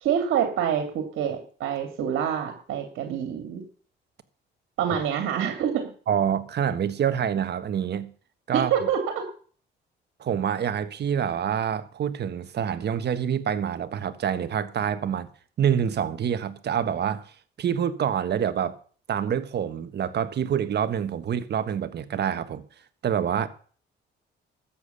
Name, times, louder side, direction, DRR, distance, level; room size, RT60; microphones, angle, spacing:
voice 1, 0.0-3.6 4.8-5.9 8.5-9.2, right 8 dB, 80° right, 2.7 m, -26 dB
voice 2, 6.1-8.1 8.5-8.7 10.2-15.3 15.6-17.3 17.6-18.8 19.1-22.6 23.0-23.5, right 8 dB, 60° right, 1.4 m, -26 dB
13.5 x 8.5 x 6.9 m
cardioid pair, 90°, 20 cm